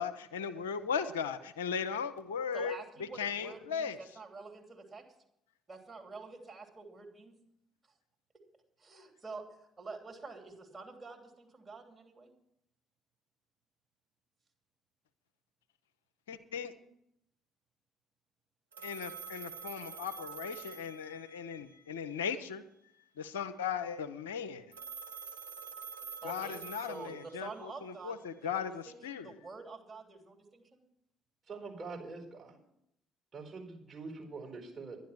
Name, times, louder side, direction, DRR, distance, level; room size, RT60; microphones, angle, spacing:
voice 1, 0.0-4.0 16.3-16.7 18.8-22.6 23.2-24.7 26.2-29.3, left 6 dB, 75° left, 0.6 m, -37 dB
voice 2, 2.5-5.0 5.7-7.4 8.8-12.3 26.2-28.2 28.4-28.5 28.9-30.8, right 3 dB, 25° right, 2.9 m, -47 dB
Telephone, 18.7-21.6 24.7-27.5, right 6 dB, 80° right, 0.7 m, -46 dB
voice 3, 31.5-32.6 33.3-35.0, right 4 dB, 40° right, 4.4 m, -44 dB
11.5 x 10.5 x 5.9 m
figure-of-eight pair, 50°, 0 cm